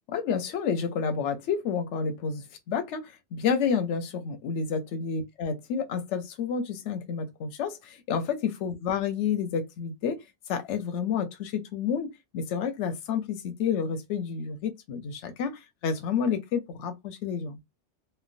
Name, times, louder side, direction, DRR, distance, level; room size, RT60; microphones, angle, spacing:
voice 1, 0.1-10.2 10.5-17.6, left 6 dB, 85° left, 0.9 m, -30 dB
3.2 x 2.1 x 2.4 m
omnidirectional pair, 1.2 m